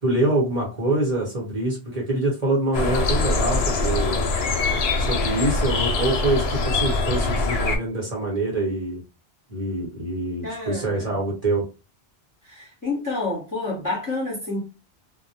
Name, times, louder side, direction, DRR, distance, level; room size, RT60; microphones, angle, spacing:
voice 1, 0.0-4.2 4.8-9.0 9.5-11.6, right 2 dB, 40° right, 0.9 m, -25 dB
sound 1, 2.7-7.8, left 3 dB, 75° left, 0.8 m, -23 dB
voice 2, 10.4-11.2 12.4-14.6, left 2 dB, 20° left, 0.9 m, -29 dB
2.1 x 2.1 x 2.7 m
omnidirectional pair, 1.1 m